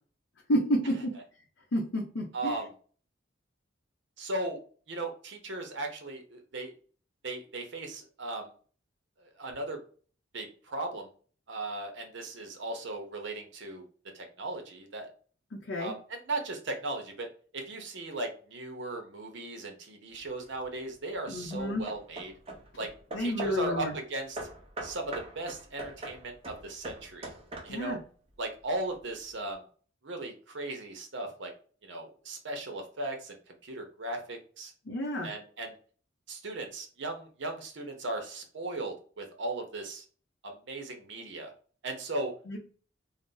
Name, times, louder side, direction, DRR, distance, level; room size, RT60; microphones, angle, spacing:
voice 1, 0.5-1.1 1.7-2.6 15.5-15.9 21.3-21.8 23.1-23.9 27.7-28.0 34.9-35.3 42.5-42.6, equal, 70° left, -1 dB, 0.6 m, -30 dB
voice 2, 2.3-2.7 4.2-4.6 4.9-6.7 7.2-8.5 9.2-9.8 10.3-11.1 11.5-13.8 14.1-15.1 15.8-17.3 17.5-22.3 22.8-22.9 23.2-24.4 24.8-27.3 27.6-28.0 28.4-29.6 30.0-31.5 31.8-34.7 35.2-35.8 36.3-40.0 40.4-41.5 41.8-42.3, right 2 dB, 65° right, 3 dB, 0.7 m, -37 dB
Hammer / Wood, 20.1-20.6 21.3-23.7 24.4-28.0, right 2 dB, 30° right, 0.6 m, -42 dB
2.5 x 2.0 x 3.7 m, 0.42 s
head